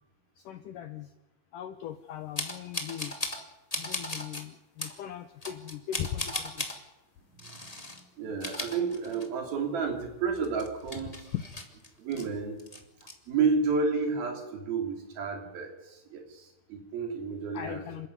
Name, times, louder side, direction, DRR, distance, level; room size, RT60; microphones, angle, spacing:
voice 1, 0.5-1.1 1.5-3.2 3.8-6.7 11.3-11.4 17.5-18.1, left 11 dB, 70° left, 8 dB, 2.2 m, -39 dB
sound 1, 2.3-3.4 3.7-4.4 4.8-5.0 5.4-6.8 7.4-8.0 8.3-9.5 9.8-9.9 10.3-12.2 12.6-13.1, left 2 dB, 15° left, 1.5 m, -37 dB
voice 2, 8.2-11.2 12.0-12.6 13.3-17.8, right 5 dB, 70° right, 4 dB, 4.9 m, -31 dB
27.5 x 13.5 x 9.5 m, 0.98 s
omnidirectional pair, 4.5 m